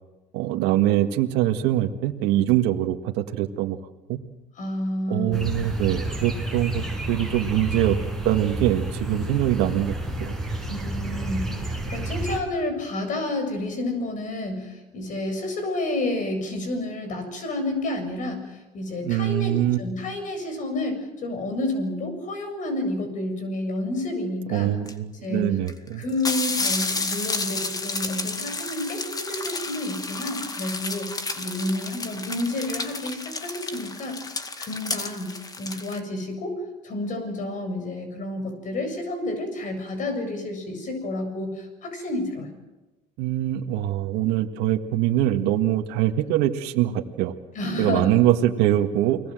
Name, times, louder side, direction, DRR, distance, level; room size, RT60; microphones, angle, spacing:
voice 1, 0.3-3.8 4.1-4.2 5.1-8.0 8.3-9.9 10.2-10.4 19.0-19.8 24.5-26.0 43.2-47.3 47.8-49.2, right 13 dB, 75° right, 5 dB, 1.8 m, -23 dB
voice 2, 4.6-5.4 10.7-24.7 25.2-25.6 25.9-42.5 47.5-48.1, left 1 dB, 45° left, 8 dB, 7.5 m, -30 dB
sound 1, 5.3-12.4, right 2 dB, ahead, 6.0 m, -30 dB
sound 2, 24.9-25.0 25.7-25.8 26.0-36.0, left 3 dB, 20° left, 2.2 m, -31 dB
29.5 x 20.5 x 7.8 m, 1.1 s
supercardioid pair, 105°, 18 cm